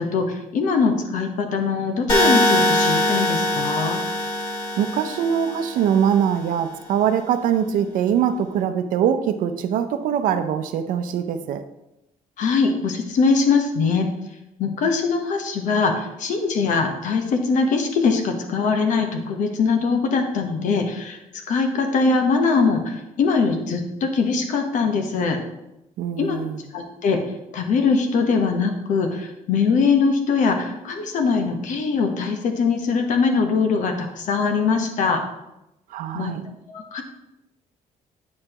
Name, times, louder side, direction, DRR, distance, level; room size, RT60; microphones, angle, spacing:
voice 1, 0.0-4.0 12.4-14.1 14.6-21.2 21.5-25.4 26.2-26.4 26.7-27.2 27.5-35.2 36.1-36.3 36.7-37.0, left 4 dB, 70° left, 5 dB, 1.1 m, -22 dB
sound 1, 2.1-6.1, left 1 dB, 35° left, 1.6 m, -22 dB
voice 2, 4.8-11.6 26.0-26.6 35.9-36.4, right 8 dB, 85° right, 9 dB, 0.6 m, -22 dB
8.5 x 6.7 x 3.0 m, 0.90 s
cardioid pair, 140°, 13 cm